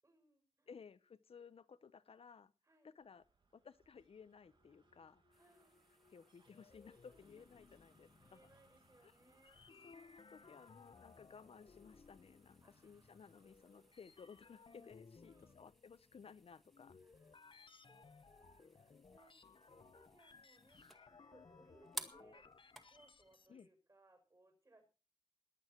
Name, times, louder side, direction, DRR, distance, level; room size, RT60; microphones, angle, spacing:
voice 1, 0.0-0.7 2.6-2.9 5.4-5.8 7.0-7.5 8.2-9.9 11.1-11.3 12.6-13.9 15.2-15.6 17.0-24.9, right 2 dB, 35° right, 4 dB, 6.2 m, -70 dB
voice 2, 0.7-2.5 2.8-3.2 3.5-5.4 6.1-8.4 9.0-9.1 9.8-17.0 23.5-23.7, left 6 dB, 80° left, 16 dB, 0.8 m, -58 dB
sound 1, 3.0-15.1, right 3 dB, 55° right, 1.9 m, -76 dB
sound 2, 4.5-23.7, left 4 dB, 60° left, 1.1 m, -63 dB
sound 3, 5.3-23.4, equal, ahead, 1.9 m, -59 dB
21.5 x 8.8 x 4.6 m, 0.34 s
wide cardioid pair, 90°, 10 cm